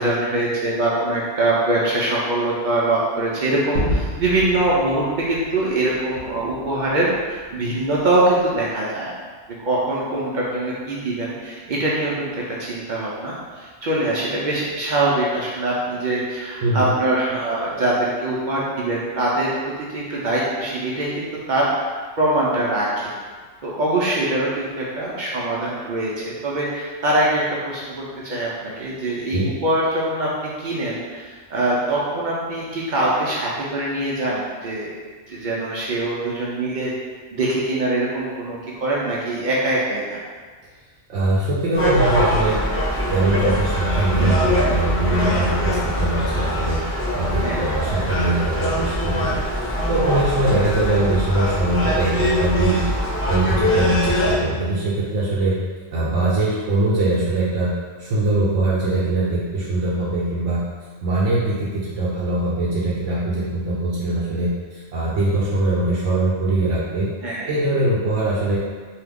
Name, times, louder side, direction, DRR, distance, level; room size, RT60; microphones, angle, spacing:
voice 1, 0.0-9.1 9.6-19.5 19.8-23.1 23.6-30.3 30.6-31.2 31.5-34.9 35.3-36.9 37.3-40.2 47.4-47.6 67.2-67.5, right 2 dB, 60° right, -6 dB, 0.5 m, -23 dB
Gunshot gunfire / Fireworks / Boom, 3.7-8.5, equal, 90° left, 1.0 m, -31 dB
voice 2, 16.6-16.9 29.3-29.5 41.1-42.6 43.1-46.8 47.1-55.6 55.9-57.7 58.0-60.6 61.0-67.1 67.4-68.6, right 2 dB, 75° right, -7 dB, 0.9 m, -22 dB
Gull seagull, 41.7-54.4, left 1 dB, 15° left, 0.6 m, -23 dB
2.7 x 2.3 x 3.4 m, 1.5 s
omnidirectional pair, 1.3 m